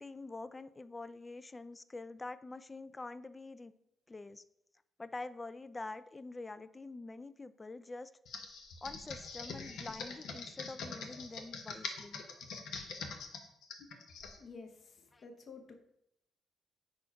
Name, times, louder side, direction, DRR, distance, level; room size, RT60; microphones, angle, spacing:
voice 1, 0.0-3.7 4.1-4.4 5.0-8.1 8.8-12.2 15.1-15.2, left 3 dB, 20° left, 14 dB, 0.3 m, -46 dB
Computer keyboard, 8.3-14.4, left 5 dB, 80° left, 0.9 m, -44 dB
voice 2, 14.4-15.7, left 4 dB, 50° left, 5 dB, 0.9 m, -51 dB
4.5 x 4.3 x 5.6 m, 0.79 s
cardioid pair, 90°, 0 cm